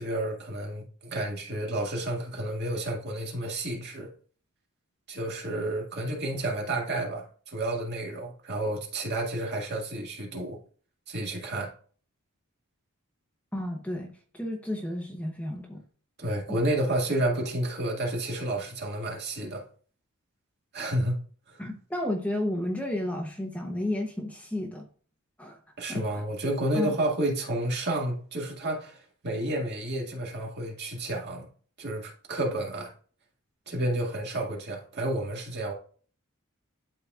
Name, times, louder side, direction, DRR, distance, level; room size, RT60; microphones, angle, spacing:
voice 1, 0.0-4.1 5.1-10.6 11.1-11.7 16.2-19.6 20.7-21.2 21.5-21.6 25.8-31.5 31.8-32.9 33.7-35.7, right 1 dB, 50° right, 2.0 m, -30 dB
voice 2, 13.5-15.8 16.5-16.6 21.6-24.8 25.4-25.6 25.9-26.0 26.7-26.9, left 1 dB, 5° left, 0.8 m, -32 dB
11.5 x 4.0 x 2.4 m
head